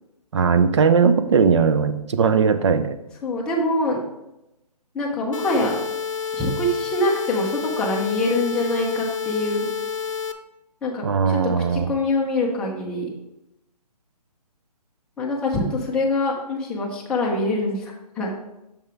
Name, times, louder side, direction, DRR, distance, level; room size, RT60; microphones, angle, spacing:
voice 1, 0.3-3.0 11.0-11.9, right 6 dB, 45° right, 10 dB, 0.6 m, -19 dB
voice 2, 3.2-4.0 4.9-5.8 6.3-9.7 10.8-11.4 11.7-13.1 15.2-18.3, left 2 dB, 5° left, -3 dB, 0.6 m, -24 dB
sound 1, 5.3-10.3, left 7 dB, 50° left, 0.6 m, -29 dB
7.3 x 5.8 x 3.4 m, 0.90 s
hypercardioid pair, 160°, 21 cm